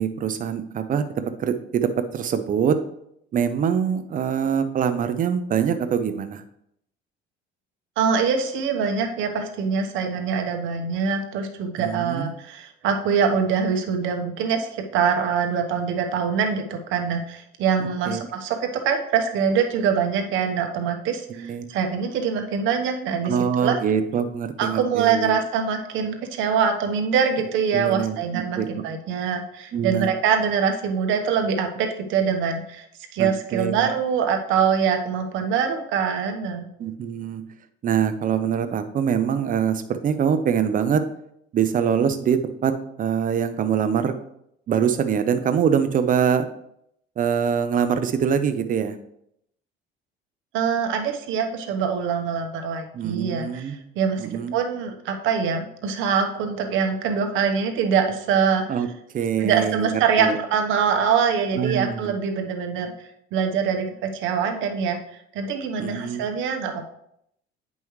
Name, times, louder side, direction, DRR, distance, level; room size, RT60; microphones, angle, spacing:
voice 1, 0.0-2.8 3.3-6.4 11.8-12.3 17.8-18.3 21.3-21.6 23.2-25.3 27.7-28.7 29.7-30.1 33.2-33.9 36.8-37.4 37.8-41.0 41.5-44.2 44.7-46.5 47.2-49.0 52.9-53.7 54.2-54.5 58.7-58.9 59.1-60.4 61.5-62.1 65.8-66.2, right 7 dB, 40° right, 10 dB, 0.8 m, -24 dB
voice 2, 8.0-23.8 24.6-32.8 33.1-36.7 50.5-54.3 54.5-58.6 59.4-62.9 63.3-66.9, right 6 dB, 70° right, 4 dB, 1.1 m, -24 dB
9.3 x 5.4 x 3.2 m, 0.75 s
cardioid pair, 120°, 20 cm